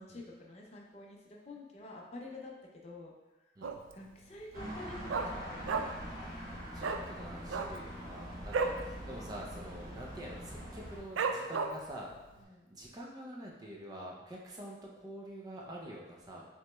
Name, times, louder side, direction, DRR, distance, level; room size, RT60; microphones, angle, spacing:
voice 1, 0.0-3.1 3.4-3.5 3.9-6.1 12.4-12.7, left 2 dB, 35° left, -1 dB, 0.5 m, -49 dB
Dog, 3.6-4.0 4.3-4.4 4.7-6.1 6.4-6.5 6.8-7.0 7.4-8.8 9.2-9.4 9.6-10.0 10.5-10.6 11.2-12.0 12.4-12.5, right 4 dB, 85° right, 0.3 m, -33 dB
sound 1, 4.5-11.0, equal, 45° right, 1.1 m, -44 dB
voice 2, 6.7-12.1 12.7-16.5, right 1 dB, 20° right, -2 dB, 0.4 m, -46 dB
6.0 x 3.0 x 2.2 m, 1.1 s
head